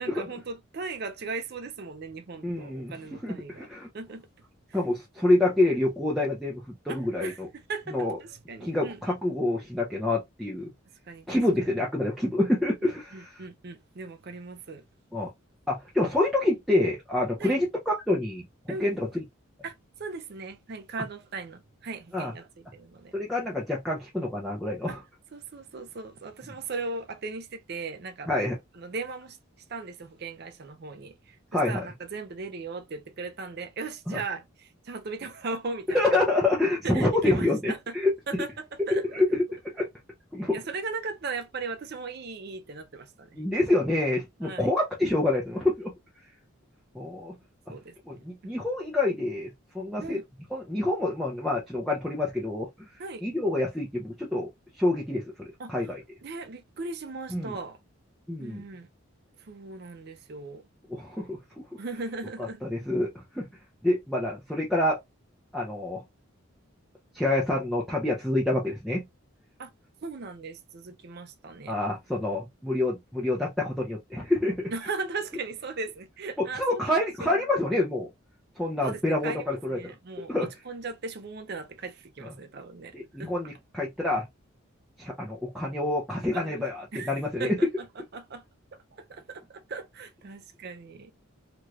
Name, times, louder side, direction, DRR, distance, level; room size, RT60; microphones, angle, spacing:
voice 1, 0.0-3.7 3.9-4.3 4.7-4.8 6.9-9.2 11.1-11.7 12.8-14.8 17.4-17.6 18.7-18.9 19.6-23.1 24.9-25.0 25.3-28.3 28.7-29.4 29.7-36.2 36.8-37.9 38.3-39.0 39.3-39.4 40.5-43.4 44.4-44.7 47.7-48.2 50.0-50.2 53.0-53.2 55.6-55.7 56.2-57.8 58.4-58.9 59.4-60.7 61.8-62.6 69.6-69.7 70.0-71.8 74.7-77.3 78.8-83.3 86.3-86.6 86.9-87.1 87.4-88.4 88.7-91.1, right 4 dB, 50° right, 0.5 m, -38 dB
voice 2, 2.4-2.9 3.2-3.9 4.7-7.5 7.9-8.2 8.6-10.7 11.3-13.5 15.1-15.3 15.7-19.2 22.1-22.3 23.1-25.0 28.3-28.5 31.5-31.9 34.1-34.2 35.9-38.1 38.9-39.3 39.7-39.9 40.3-40.6 43.3-45.9 46.9-47.3 48.1-50.2 50.5-54.5 54.7-56.0 57.3-57.5 58.3-58.6 60.9-61.4 62.6-63.5 63.8-65.0 65.5-66.0 67.1-69.0 71.7-74.7 76.5-78.1 78.6-79.8 80.3-80.5 82.9-84.3 85.0-87.6, left 2 dB, ahead, 0.5 m, -27 dB
3.1 x 2.9 x 2.4 m
head